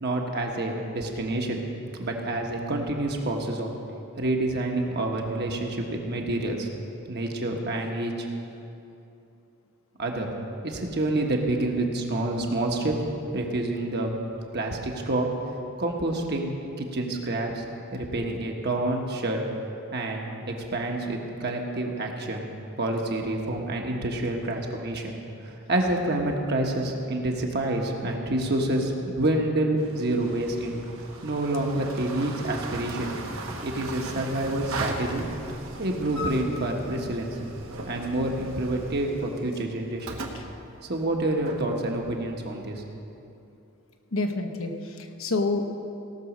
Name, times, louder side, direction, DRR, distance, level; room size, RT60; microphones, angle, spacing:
voice 1, 0.0-1.6 2.0-3.7 4.2-6.7 7.1-8.3 10.0-10.3 10.6-13.0 13.3-14.1 14.5-15.3 15.8-17.6 17.9-19.4 19.9-20.3 20.7-22.5 22.8-25.2 25.4-30.8 31.2-33.1 33.6-35.2 35.8-37.3 37.8-40.2 40.8-42.8, right 1 dB, 50° right, 1 dB, 1.3 m, -28 dB
sound 1, 29.8-42.8, right 2 dB, 80° right, 1.3 m, -38 dB
voice 2, 44.1-45.7, left 2 dB, 75° left, 5 dB, 0.9 m, -28 dB
17.5 x 6.2 x 6.2 m, 2.8 s
head